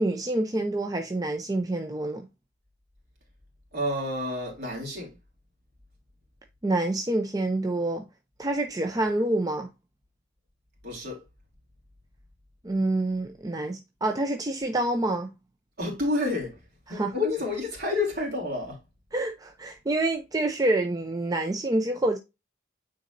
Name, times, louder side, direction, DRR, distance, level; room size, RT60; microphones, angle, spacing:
voice 1, 0.0-2.3 6.6-8.0 8.4-9.7 12.6-15.3 16.9-17.1 19.1-22.2, right 2 dB, 20° right, 0.5 m, -27 dB
voice 2, 3.7-5.1 10.8-11.2 15.8-16.6 16.9-18.8, left 2 dB, 55° right, 3.2 m, -29 dB
9.2 x 4.1 x 2.6 m
head